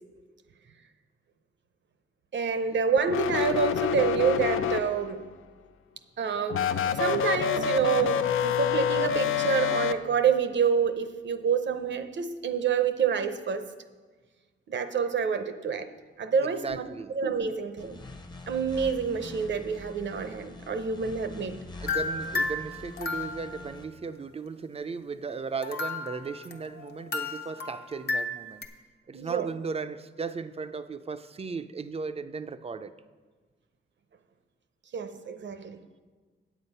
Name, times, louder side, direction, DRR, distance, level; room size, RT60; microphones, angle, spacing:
voice 1, 2.3-5.3 6.2-6.7 6.9-13.7 14.7-15.9 16.2-16.8 17.1-18.0 18.5-21.6 29.1-29.5 34.9-35.8, right 6 dB, 60° right, 0.7 m, -27 dB
sound 1, 3.1-5.2 6.5-9.9, left 8 dB, 80° left, 0.5 m, -27 dB
voice 2, 16.4-17.2 21.8-28.7 29.1-32.9, right 4 dB, 30° right, 0.4 m, -36 dB
sound 2, 17.8-23.8, left 2 dB, 20° left, 0.7 m, -44 dB
sound 3, 21.9-23.8 25.6-28.6, left 3 dB, 50° left, 0.8 m, -33 dB
8.5 x 8.1 x 5.5 m
cardioid pair, 100°, 21 cm